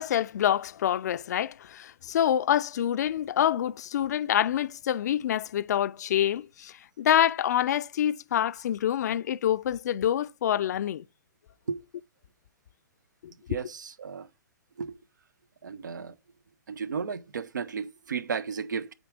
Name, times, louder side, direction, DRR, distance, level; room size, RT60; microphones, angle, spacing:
voice 1, 0.0-11.0 13.2-13.3, left 10 dB, 65° left, 0.4 m, -26 dB
voice 2, 13.5-14.3 14.8-15.0 15.6-16.1 16.7-18.9, right 6 dB, 85° right, 0.6 m, -34 dB
7.9 x 3.6 x 5.0 m
hypercardioid pair, 130°, 10 cm